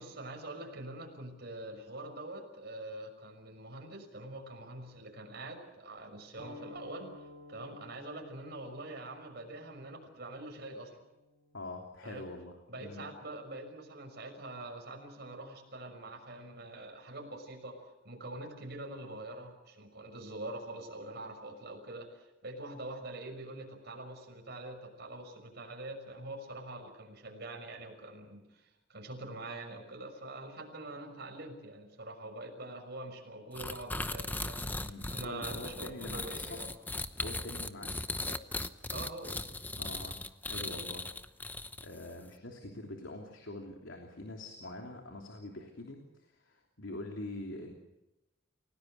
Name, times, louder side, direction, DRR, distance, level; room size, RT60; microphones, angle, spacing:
voice 1, 0.0-7.1 7.5-10.9 12.0-12.2 12.7-36.7 38.2-38.4 38.9-39.4, right 2 dB, 55° right, 3 dB, 6.2 m, -44 dB
sound 1, 6.4-11.6, left 2 dB, 25° left, 7.6 m, -54 dB
voice 2, 11.5-13.0 34.8-36.6 37.2-37.9 39.8-41.1 41.8-47.7, left 1 dB, 80° left, 2 dB, 3.1 m, -44 dB
sound 2, 33.6-42.1, left 2 dB, 10° left, 0.8 m, -38 dB
29.5 x 18.0 x 8.1 m, 0.96 s
head